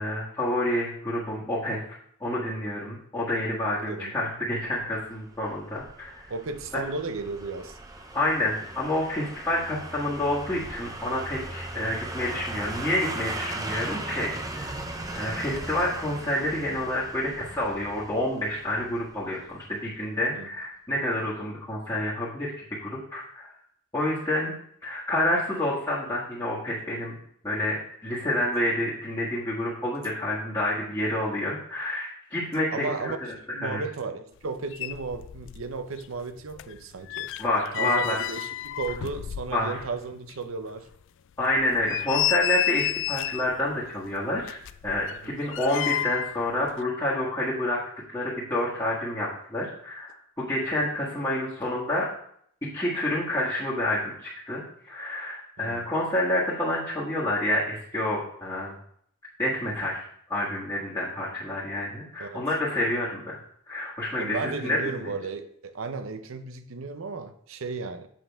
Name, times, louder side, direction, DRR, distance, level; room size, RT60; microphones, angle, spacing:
voice 1, 0.0-1.8 2.2-6.3 6.7-6.8 8.1-14.8 15.1-23.5 23.9-24.5 24.8-27.2 27.4-33.1 33.6-33.8 37.4-38.2 39.5-39.7 41.4-44.6 44.8-47.8 48.1-52.1 52.6-58.7 59.4-63.4 63.7-64.8, left 1 dB, 20° left, -9 dB, 1.6 m, -28 dB
voice 2, 3.7-4.2 6.3-7.8 20.2-20.5 32.7-33.2 33.5-37.3 37.7-40.9 45.2-45.4 55.6-55.8 62.2-62.5 64.2-68.1, right 4 dB, 75° right, 9 dB, 0.6 m, -34 dB
sound 1, 4.7-19.6 20.0-20.1, right 2 dB, 15° right, 0.6 m, -38 dB
sound 2, 34.4-34.5 34.7-35.7 36.0-39.9 40.3-40.4 40.9-41.0 41.6-43.5 44.4-46.4 46.7-46.8, left 13 dB, 65° left, 0.3 m, -31 dB
7.5 x 5.6 x 3.5 m, 0.66 s
head